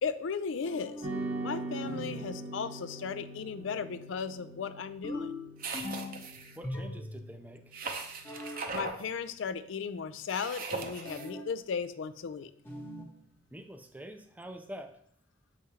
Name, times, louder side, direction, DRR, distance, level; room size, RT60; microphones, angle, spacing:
voice 1, 0.0-1.1 1.4-5.3 8.7-12.5, left 6 dB, 85° left, 13 dB, 0.4 m, -36 dB
sound 1, 0.7-1.2 1.9-2.4 5.0-6.2 6.6-7.3 8.2-8.7 11.0-11.6 12.7-13.2, left 1 dB, 10° left, 0.8 m, -40 dB
sound 2, 1.0-9.5, right 2 dB, 85° right, 1.7 m, -42 dB
sound 3, 5.6-6.6 7.7-9.0 10.3-11.3, right 4 dB, 45° right, 0.6 m, -39 dB
voice 2, 6.5-7.6 13.5-14.9, equal, 10° right, 7 dB, 0.4 m, -45 dB
7.1 x 4.9 x 2.8 m, 0.65 s
head